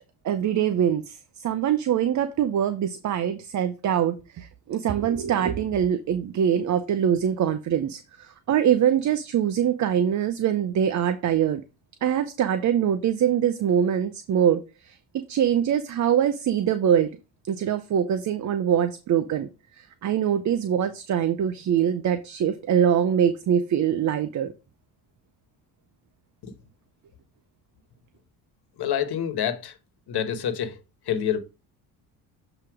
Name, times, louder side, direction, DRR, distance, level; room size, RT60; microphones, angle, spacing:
voice 1, 0.2-11.6 12.0-15.0 15.3-17.2 17.5-19.5 19.8-24.5, right 9 dB, 40° right, 0.6 m, -23 dB
voice 2, 28.8-29.7 30.1-30.8 31.1-31.4, left 9 dB, 55° left, 1.5 m, -27 dB
7.6 x 2.9 x 4.9 m
hypercardioid pair, 65°, 46 cm